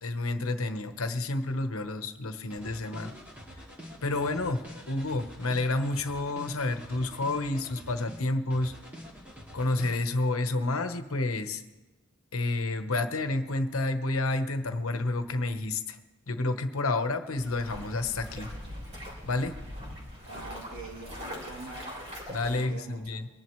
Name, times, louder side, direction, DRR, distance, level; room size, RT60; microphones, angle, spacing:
voice 1, 0.0-3.1 4.0-4.6 4.9-8.7 9.5-11.6 12.3-16.0 16.3-18.5 19.3-19.5 22.3-23.3, left 2 dB, 75° left, 8 dB, 1.1 m, -30 dB
sound 1, 2.5-8.2 8.5-10.0, equal, 10° right, 2.4 m, -46 dB
sound 2, 17.4-22.6, equal, 30° right, 3.3 m, -42 dB
voice 2, 20.3-22.0 22.4-23.2, right 2 dB, 80° right, -1 dB, 2.9 m, -44 dB
24.0 x 10.5 x 3.2 m, 1.1 s
head